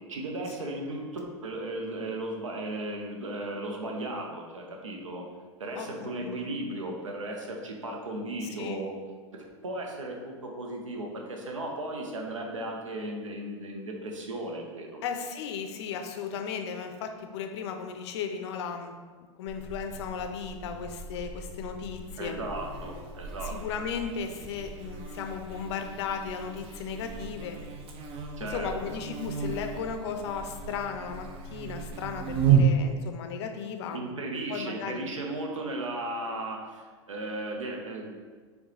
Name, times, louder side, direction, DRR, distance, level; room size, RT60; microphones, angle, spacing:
voice 1, 0.1-5.2 5.6-8.9 9.3-15.0 22.2-23.6 28.4-28.9 33.9-38.1, right 1 dB, 85° right, 1 dB, 0.6 m, -36 dB
voice 2, 5.8-6.3 8.4-8.8 15.0-18.9 19.4-22.4 23.4-27.6 28.4-34.0 34.5-35.0, left 6 dB, 60° left, 6 dB, 0.5 m, -35 dB
Buzz, 19.5-32.6, right 7 dB, 35° right, 0.5 m, -33 dB
4.5 x 2.2 x 3.1 m, 1.5 s
hypercardioid pair, 90°, 16 cm